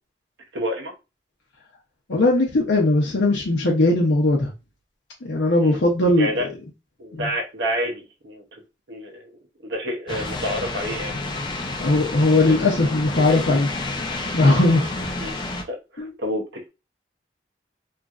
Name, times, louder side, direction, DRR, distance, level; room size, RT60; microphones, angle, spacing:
voice 1, 0.5-0.9 5.6-5.8 6.2-6.5 7.0-8.6 8.9-11.4 12.5-12.7 13.1-13.5 15.2-15.4 15.6-16.7, equal, 85° right, 0.7 m, -29 dB
voice 2, 2.1-4.5 5.2-6.3 7.1-7.2 11.8-13.7 14.3-14.9 16.0-16.1, left 2 dB, 85° left, 0.7 m, -19 dB
sound 1, 10.1-15.6, left 2 dB, 25° left, 0.4 m, -30 dB
3.0 x 2.5 x 2.3 m
head